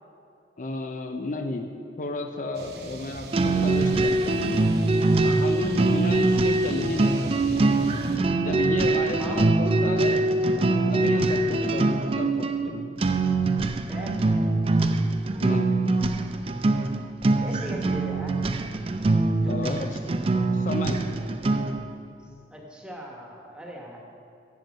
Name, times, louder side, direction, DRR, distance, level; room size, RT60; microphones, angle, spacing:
voice 1, 0.6-1.7 2.0-4.6 5.2-7.9 8.4-10.3 10.9-13.0 15.4-15.7 19.4-19.9 20.5-21.1, left 2 dB, 45° left, 5 dB, 0.5 m, -33 dB
sound 1, 2.5-8.2, right 2 dB, 65° right, 0.7 m, -40 dB
sound 2, 3.3-21.9, right 2 dB, 30° right, 0.4 m, -23 dB
voice 2, 5.2-5.9 9.2-9.5 13.9-14.2 17.4-18.4 19.4-19.8 22.2-24.0, right 1 dB, 5° right, -1 dB, 1.3 m, -39 dB
10.5 x 7.5 x 5.3 m, 2.5 s
head